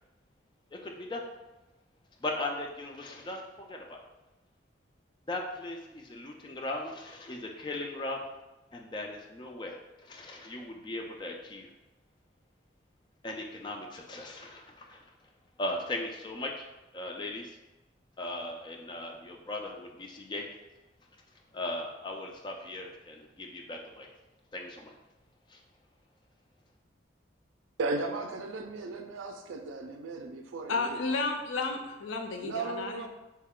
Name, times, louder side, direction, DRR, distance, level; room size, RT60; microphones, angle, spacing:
voice 1, 0.7-1.2 2.2-4.0 5.3-8.3 8.7-11.7 13.2-15.1 15.6-16.7 16.9-17.6 18.2-20.5 21.5-24.1 24.5-24.9 25.5-25.6, left 2 dB, 25° left, 1 dB, 0.3 m, -38 dB
voice 2, 27.8-31.0 32.4-33.1, right 3 dB, 85° right, 6 dB, 0.4 m, -36 dB
voice 3, 30.7-33.1, left 3 dB, 85° left, 4 dB, 0.4 m, -32 dB
3.2 x 2.3 x 3.6 m, 1.0 s
head